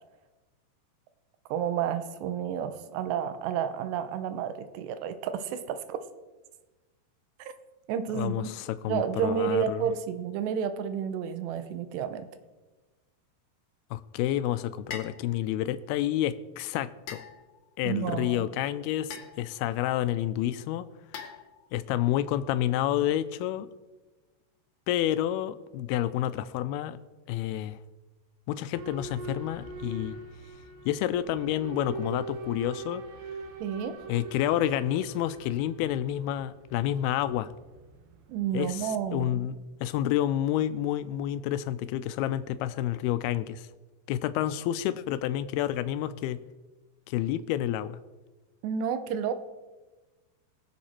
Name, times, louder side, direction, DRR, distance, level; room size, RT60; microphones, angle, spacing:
voice 1, 1.5-6.1 7.4-7.5 7.9-8.5 8.9-12.3 17.8-18.5 33.6-34.0 38.3-39.5 48.6-49.3, right 8 dB, 85° right, 11 dB, 3.0 m, -31 dB
voice 2, 8.1-9.8 13.9-17.2 17.8-20.9 21.7-23.7 24.9-27.0 27.3-27.8 28.5-30.2 30.9-33.0 34.1-37.5 38.5-43.7 44.1-46.4 47.1-48.0, left 12 dB, 80° left, 14 dB, 2.3 m, -29 dB
sound 1, 14.9-15.3 17.1-17.7 19.1-19.6 21.1-21.8, left 7 dB, 60° left, 2.1 m, -42 dB
Boat Water vehicle / Alarm, 28.7-39.4, right 3 dB, 70° right, 2.9 m, -43 dB
21.0 x 7.4 x 4.3 m, 1.2 s
omnidirectional pair, 4.8 m